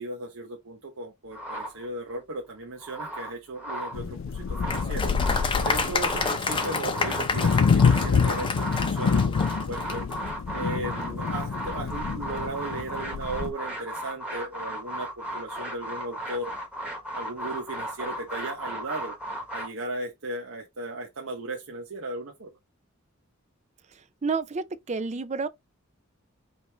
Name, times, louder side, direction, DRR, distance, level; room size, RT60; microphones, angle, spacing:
voice 1, 0.0-5.1 5.5-10.0 10.5-16.5 17.1-19.2 19.5-22.5, right 2 dB, 80° right, 1.0 m, -36 dB
sound 1, 1.3-2.2 2.6-4.0 4.4-19.7, right 1 dB, 5° right, 1.4 m, -36 dB
sound 2, 3.9-13.5, left 5 dB, 70° left, 0.4 m, -27 dB
Applause, 4.7-10.2, left 4 dB, 25° left, 0.7 m, -30 dB
voice 2, 23.9-25.5, right 4 dB, 35° right, 0.5 m, -31 dB
5.2 x 3.1 x 3.4 m
head